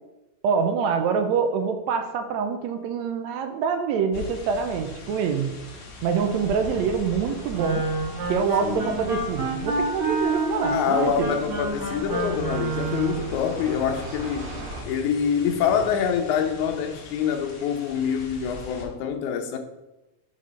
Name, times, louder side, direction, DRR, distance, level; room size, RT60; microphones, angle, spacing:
voice 1, 0.4-5.5 6.0-7.9 8.3-11.3, right 6 dB, 80° right, 1.8 m, -25 dB
sound 1, 4.1-18.9, left 3 dB, 55° left, 2.1 m, -41 dB
sound 2, 6.1-14.8, right 2 dB, 55° right, 1.9 m, -41 dB
Wind instrument woodwind instrument, 7.5-13.3, right 3 dB, 35° right, 1.8 m, -28 dB
voice 2, 8.6-8.9 10.7-14.5 14.9-19.6, left 7 dB, 85° left, 2.2 m, -25 dB
5.5 x 5.3 x 5.0 m
omnidirectional pair, 3.4 m